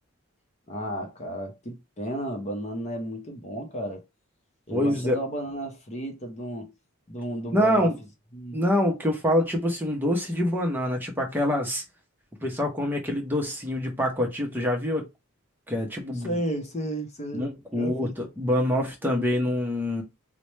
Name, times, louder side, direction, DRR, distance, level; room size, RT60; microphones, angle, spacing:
voice 1, 0.7-4.0 4.7-6.7 7.1-7.9 8.3-8.6 16.2-17.5 17.7-18.1, right 1 dB, 30° left, 0.7 m, -33 dB
voice 2, 4.7-5.2 7.5-7.9 8.5-11.8 12.4-15.0 15.7-16.4 17.3-20.0, left 1 dB, 10° right, 0.6 m, -25 dB
4.1 x 2.1 x 3.1 m
head